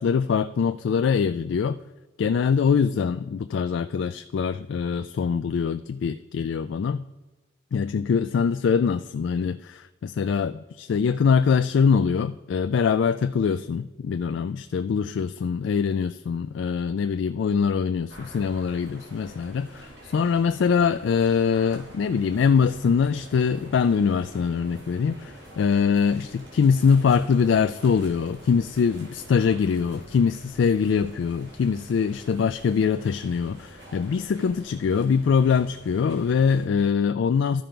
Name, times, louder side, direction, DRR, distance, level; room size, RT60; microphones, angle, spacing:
voice 1, 0.0-1.8 2.2-7.0 7.7-37.6, left 6 dB, 75° left, 11 dB, 0.3 m, -23 dB
sound 1, 18.1-36.7, right 1 dB, 70° right, 2.6 m, -46 dB
13.0 x 5.2 x 4.4 m, 1.2 s
head